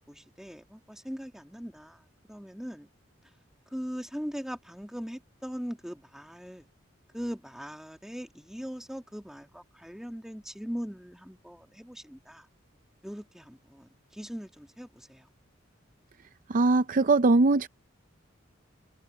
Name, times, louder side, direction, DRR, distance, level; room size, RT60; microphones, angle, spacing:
voice 1, 0.1-2.0 2.3-2.9 3.7-6.7 7.1-12.5 13.0-15.3, equal, ahead, 2.1 m, -40 dB
voice 2, 16.5-17.7, right 3 dB, 45° right, 0.5 m, -21 dB
head